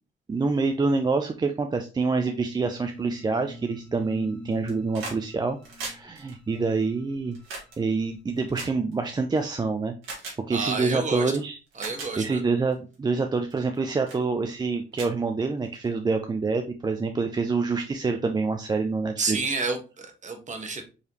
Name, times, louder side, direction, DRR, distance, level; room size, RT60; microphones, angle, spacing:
voice 1, 0.3-7.4 7.8-9.9 10.5-11.6 11.9-19.4, right 4 dB, 20° right, 5 dB, 0.4 m, -26 dB
sound 1, 2.6-7.8, equal, 5° left, 0.9 m, -44 dB
sound 2, 4.5-5.2 5.5-9.4 10.0-10.4 11.2-11.3 11.7-12.1 12.7-12.9 13.5-13.8 14.1-14.2 14.6-14.7 14.9-15.9 17.0-17.1, right 3 dB, 85° right, 1.8 m, -39 dB
voice 2, 10.5-11.3 11.8-12.4 19.2-20.8, right 4 dB, 40° right, 5 dB, 1.1 m, -30 dB
4.7 x 3.3 x 2.9 m, 0.32 s
cardioid pair, 90°, 20 cm